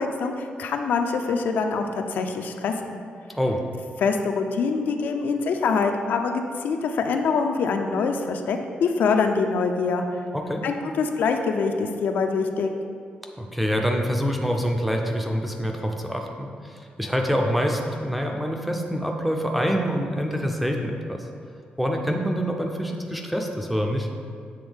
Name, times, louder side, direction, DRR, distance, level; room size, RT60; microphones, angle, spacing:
voice 1, 0.0-3.0 4.0-10.0 10.6-12.7, left 5 dB, 65° left, 5 dB, 0.4 m, -24 dB
voice 2, 10.3-10.6 13.4-21.2 21.8-24.1, equal, ahead, 2 dB, 0.4 m, -26 dB
7.9 x 3.5 x 3.4 m, 2.3 s
wide cardioid pair, 180°, 3 cm